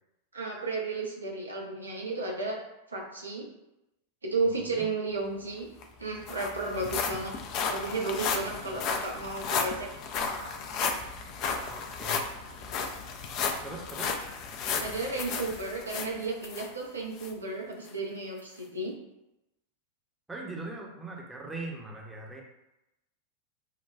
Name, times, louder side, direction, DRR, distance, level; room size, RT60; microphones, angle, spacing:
voice 1, 0.3-2.6 2.9-3.5 4.2-5.7 6.0-7.3 7.7-9.9 14.8-18.9, right 3 dB, 75° right, -1 dB, 0.6 m, -33 dB
voice 2, 4.4-4.9 11.7-12.3 13.6-14.2 20.3-22.4, right 2 dB, 10° right, -1 dB, 0.7 m, -40 dB
sound 1, 5.5-5.6 5.8-16.7 17.2-17.3 17.9-18.0, left 5 dB, 40° left, 0.4 m, -33 dB
5.5 x 2.2 x 2.3 m, 0.92 s
figure-of-eight pair, 90°, 0 cm